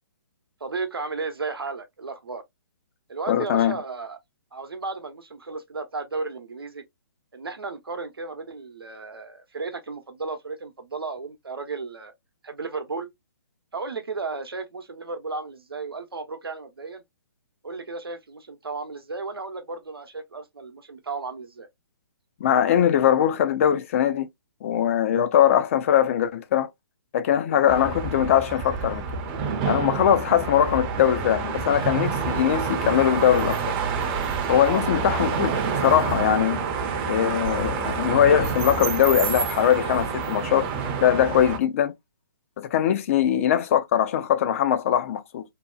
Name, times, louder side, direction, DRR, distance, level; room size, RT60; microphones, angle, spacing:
voice 1, 0.6-2.4 3.1-4.2 4.5-6.8 7.3-12.1 12.4-13.1 13.7-17.0 17.6-21.7 34.6-34.9, right 4 dB, 85° right, 0.8 m, -34 dB
voice 2, 3.3-3.8 22.4-24.3 24.6-26.7 27.1-29.1 29.6-33.6 34.5-35.5 35.8-36.6 37.1-40.7 41.0-41.9 42.6-45.4, left 10 dB, 35° left, 0.4 m, -21 dB
sound 1, 27.7-41.6, right 5 dB, 25° right, 0.5 m, -28 dB
2.8 x 2.1 x 2.3 m
figure-of-eight pair, 135°, 12 cm